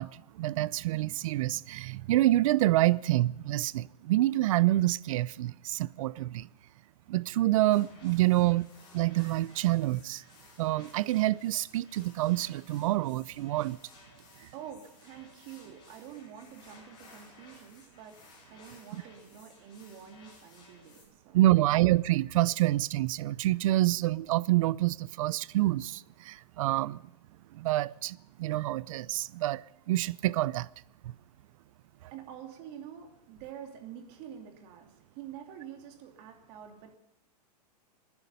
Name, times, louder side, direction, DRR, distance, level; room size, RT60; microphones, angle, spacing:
voice 1, 0.0-6.5 7.1-8.7 8.9-10.2 10.6-13.8 21.3-27.0 27.5-29.6 29.9-30.7 31.0-31.1, right 16 dB, 55° right, 0.5 m, -27 dB
sound 1, 7.7-21.1, left 3 dB, 20° left, 5.3 m, -57 dB
voice 2, 14.5-18.2 18.5-21.7 32.1-37.0, right 9 dB, 40° right, 2.8 m, -47 dB
26.5 x 9.7 x 5.5 m
hypercardioid pair, 150°, 21 cm